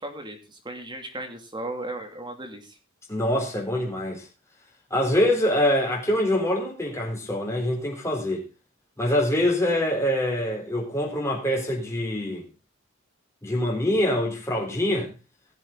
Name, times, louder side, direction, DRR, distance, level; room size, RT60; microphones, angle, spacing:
voice 1, 0.0-2.8, right 1 dB, 20° right, 2.5 m, -36 dB
voice 2, 3.1-4.3 4.9-8.4 9.0-12.4 13.4-15.1, left 1 dB, 15° left, 3.7 m, -24 dB
18.5 x 7.6 x 3.7 m
head